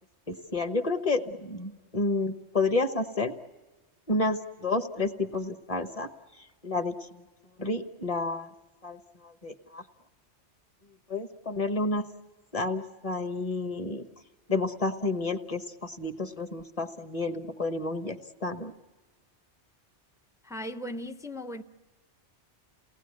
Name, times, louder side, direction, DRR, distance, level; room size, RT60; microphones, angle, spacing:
voice 1, 0.3-3.3 4.1-6.1 6.6-7.2 7.6-8.5 8.8-9.8 11.1-12.0 12.5-14.1 14.5-18.7, left 3 dB, 30° left, 1.2 m, -30 dB
voice 2, 20.4-21.6, left 1 dB, 5° right, 0.5 m, -37 dB
29.0 x 18.5 x 9.6 m
omnidirectional pair, 1.2 m